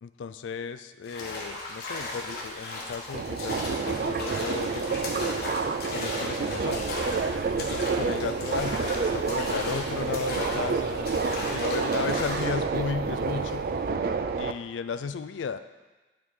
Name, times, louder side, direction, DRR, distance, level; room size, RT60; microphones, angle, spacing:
voice 1, 0.0-5.3 5.9-6.9 7.5-11.2 11.4-13.7 14.4-15.6, left 5 dB, 85° left, 12 dB, 0.4 m, -35 dB
sound 1, 1.0-12.6, left 2 dB, 55° left, 1.1 m, -36 dB
Subway metro underground, 3.1-14.5, right 4 dB, 50° right, 0.3 m, -29 dB
sound 2, 6.7-13.9, left 1 dB, 20° left, 0.6 m, -45 dB
9.3 x 3.7 x 4.7 m, 1.2 s
head